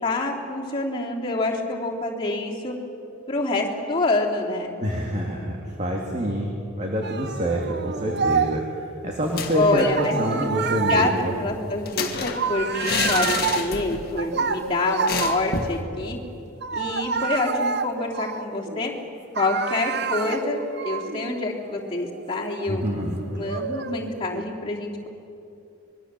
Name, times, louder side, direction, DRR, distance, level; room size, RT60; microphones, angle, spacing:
voice 1, 0.0-2.7 3.3-4.8 9.5-10.5 10.9-16.2 16.7-18.9 19.3-22.8 23.3-25.1, left 2 dB, 25° left, -3 dB, 3.2 m, -26 dB
voice 2, 4.8-11.3 22.7-23.2, equal, 30° right, -1 dB, 2.5 m, -26 dB
sound 1, 7.0-8.8 10.0-15.9 16.6-19.0 19.4-24.4, right 5 dB, 50° right, 0.9 m, -29 dB
sound 2, 9.2-10.0 10.3-10.4 10.7-14.1 14.4-14.6 15.1-15.8, left 4 dB, 45° left, 2.0 m, -29 dB
25.5 x 22.5 x 7.6 m, 2.8 s
head